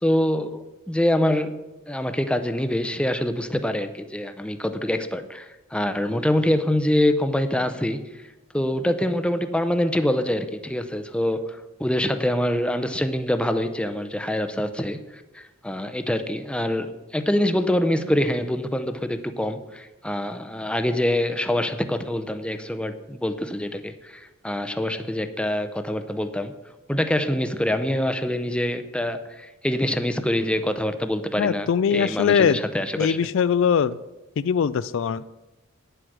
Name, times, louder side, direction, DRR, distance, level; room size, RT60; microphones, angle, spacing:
voice 1, 0.0-8.0 8.5-26.5 26.9-33.2, left 1 dB, 5° left, 9 dB, 0.6 m, -25 dB
voice 2, 31.4-32.6 33.0-34.0 34.4-35.3, left 7 dB, 60° left, 16 dB, 0.3 m, -21 dB
9.3 x 7.9 x 6.3 m, 1.1 s
head